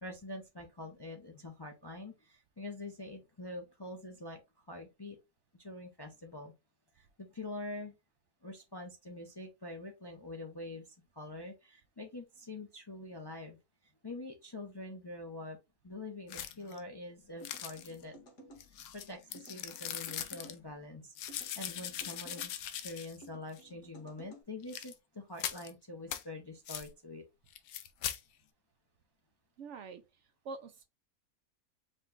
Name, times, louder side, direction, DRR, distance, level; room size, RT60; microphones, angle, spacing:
voice 1, 0.0-5.2 5.6-6.5 6.9-7.9 8.4-13.6 14.0-15.6 15.8-18.2 18.9-27.2, left 2 dB, 25° left, 0.5 m, -45 dB
sound 1, 16.3-16.8 17.4-18.0 18.6-20.5 21.1-23.2 23.5-23.6 24.6-24.9 25.4-25.7 26.1-26.2 26.7-26.9 27.5-28.2, left 10 dB, 80° left, 1.0 m, -41 dB
sound 2, 17.4-18.6 19.3-20.6 21.3-22.5 23.2-24.4, equal, 55° left, 1.7 m, -55 dB
voice 2, 29.6-30.0 30.4-30.8, right 4 dB, 65° right, 0.8 m, -44 dB
5.1 x 2.3 x 3.7 m
omnidirectional pair, 1.5 m